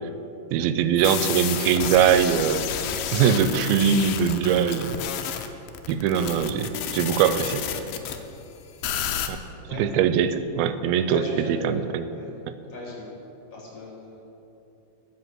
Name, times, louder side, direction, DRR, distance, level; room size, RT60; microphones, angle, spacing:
voice 1, 0.5-2.7 3.1-5.1 5.9-7.6 9.3-9.4 9.8-11.2 11.5-12.0 12.5-12.6, right 8 dB, 85° right, 11 dB, 2.4 m, -22 dB
sound 1, 1.0-8.2 8.8-9.3, left 9 dB, 85° left, 2.5 m, -30 dB
voice 2, 9.6-9.9 11.1-11.8 12.1-12.3 12.7-13.2 13.5-14.2, left 2 dB, 40° left, -5 dB, 3.6 m, -37 dB
12.0 x 5.8 x 7.7 m, 2.9 s
omnidirectional pair, 4.4 m